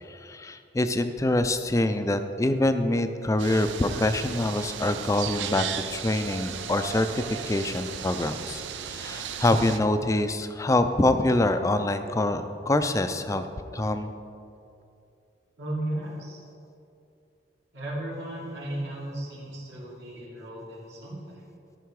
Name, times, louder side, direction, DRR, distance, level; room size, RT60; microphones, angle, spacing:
voice 1, 0.1-5.7 5.9-13.5 13.7-14.1, left 1 dB, 15° left, 9 dB, 0.4 m, -25 dB
sound 1, 3.4-9.8, right 8 dB, 85° right, 0.5 m, -36 dB
voice 2, 15.6-16.4 17.7-21.4, right 1 dB, 70° right, -6 dB, 2.6 m, -35 dB
13.0 x 5.8 x 4.7 m, 2.6 s
head